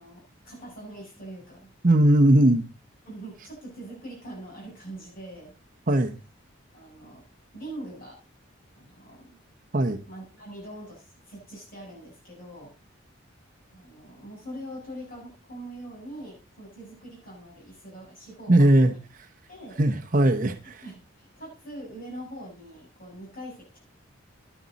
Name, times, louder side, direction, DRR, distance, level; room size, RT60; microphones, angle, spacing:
voice 1, 0.0-1.7 3.1-5.5 6.7-7.2 7.5-8.2 8.7-9.4 10.1-12.7 13.7-19.0 19.5-19.8 20.8-23.8, right 1 dB, 45° left, -3 dB, 8.0 m, -43 dB
voice 2, 1.8-2.6 5.9-6.2 9.7-10.0 18.5-18.9 19.8-20.8, right 1 dB, 40° right, 6 dB, 0.8 m, -19 dB
11.0 x 10.5 x 4.0 m, 0.32 s
head